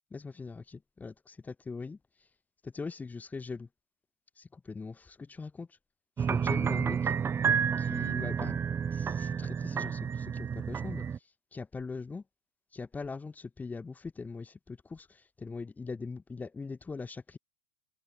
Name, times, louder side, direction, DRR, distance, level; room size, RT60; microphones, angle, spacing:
voice 1, 0.1-2.0 2.6-3.7 4.4-5.7 6.3-7.1 7.8-8.6 8.9-11.0 11.5-12.2 12.7-15.1 15.4-17.4, left 4 dB, 15° left, 2.1 m, -41 dB
sound 1, 6.2-11.2, right 7 dB, 25° right, 1.2 m, -30 dB
figure-of-eight pair, 85°, 11 cm